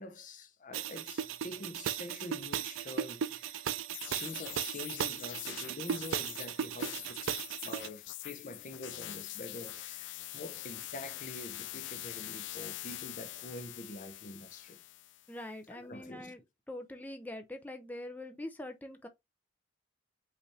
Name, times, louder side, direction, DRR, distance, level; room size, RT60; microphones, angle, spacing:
voice 1, 0.0-3.7 4.2-7.2 7.6-14.8 15.7-16.4, left 2 dB, 40° left, 0.7 m, -46 dB
sound 1, 0.7-7.9, right 9 dB, 85° right, 0.4 m, -37 dB
sound 2, 3.9-15.3, left 14 dB, 65° left, 0.4 m, -44 dB
voice 2, 15.3-16.4 16.7-19.1, left 1 dB, 10° left, 0.5 m, -43 dB
5.3 x 2.5 x 3.2 m
head